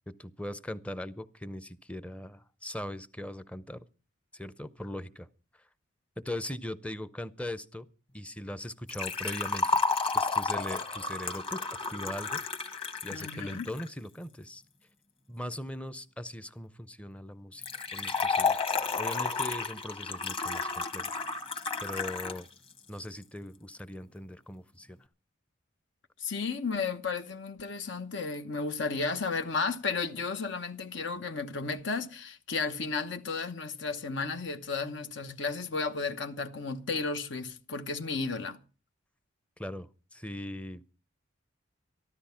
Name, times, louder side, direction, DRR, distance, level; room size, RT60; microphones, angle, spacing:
voice 1, 0.1-3.8 4.3-5.3 6.2-7.9 8.1-9.8 10.1-11.6 11.9-12.7 13.0-14.6 15.3-17.6 17.9-18.6 19.0-21.1 21.8-22.5 22.9-25.0 39.6-40.8, left 1 dB, 5° left, 0.6 m, -40 dB
Liquid, 8.9-13.9 17.6-22.4 22.7-22.8 23.7-23.8, left 4 dB, 30° left, 1.5 m, -31 dB
voice 2, 13.1-13.7 26.2-38.6, left 4 dB, 65° left, 1.0 m, -33 dB
13.5 x 12.5 x 5.7 m
head